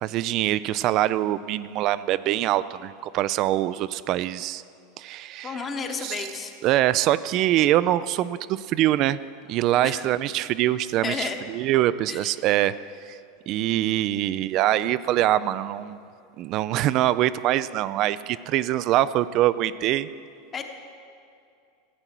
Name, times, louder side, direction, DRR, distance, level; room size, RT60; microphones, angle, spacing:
voice 1, 0.0-4.6 5.0-5.7 6.0-6.3 6.6-9.2 9.5-12.7 13.1-13.2 13.5-16.0 16.4-20.1, right 14 dB, 50° right, 16 dB, 0.3 m, -24 dB
voice 2, 5.4-6.5 9.8-10.0 11.0-11.4 12.1-12.3 20.5-20.6, left 5 dB, 30° left, 5 dB, 1.2 m, -31 dB
14.5 x 8.8 x 4.5 m, 2.5 s
hypercardioid pair, 85°, 0 cm